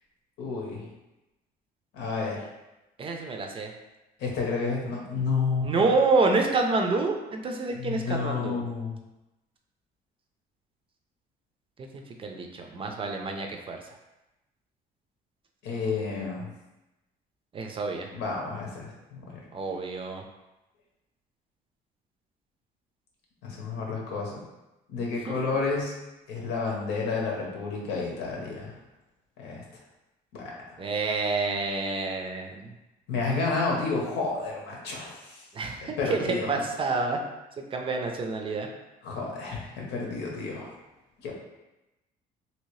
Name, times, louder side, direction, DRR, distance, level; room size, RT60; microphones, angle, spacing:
voice 1, 0.4-0.9 1.9-2.4 4.2-5.8 7.7-8.9 15.6-16.5 18.1-19.4 23.4-24.4 24.9-25.9 26.3-28.7 29.4-29.6 30.3-30.5 33.1-35.4 35.8-36.6 39.0-40.7 41.2-41.3, left 4 dB, 85° left, -2 dB, 0.9 m, -30 dB
voice 2, 3.0-3.7 5.6-8.6 11.8-11.9 12.2-13.8 17.5-18.1 19.5-20.2 25.3-25.5 30.8-32.7 35.5-37.2 37.7-38.7, right 3 dB, 30° right, 3 dB, 0.5 m, -28 dB
3.0 x 2.7 x 3.1 m, 0.99 s
cardioid pair, 110°, 17 cm